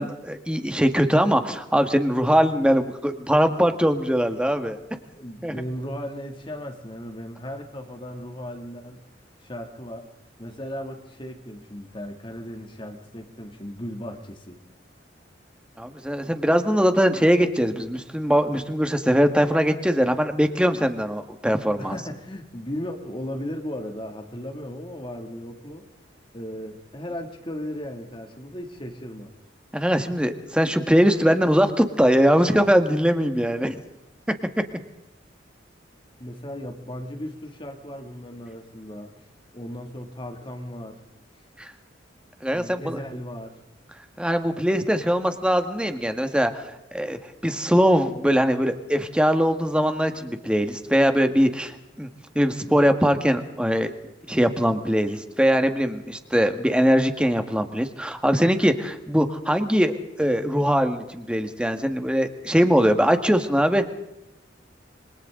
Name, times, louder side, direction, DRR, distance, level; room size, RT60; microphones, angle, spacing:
voice 1, 0.0-4.8 5.4-5.6 15.8-21.9 29.7-33.8 41.6-41.7 42.4-43.0 44.2-52.1 52.3-53.9 54.3-63.9, equal, 5° right, 7 dB, 1.6 m, -21 dB
voice 2, 5.1-9.0 9.4-10.1 10.4-14.6 21.8-25.9 26.3-29.3 36.2-39.2 39.5-41.0 42.5-43.6, equal, 25° left, 3 dB, 2.4 m, -36 dB
27.0 x 25.0 x 3.8 m, 0.89 s
head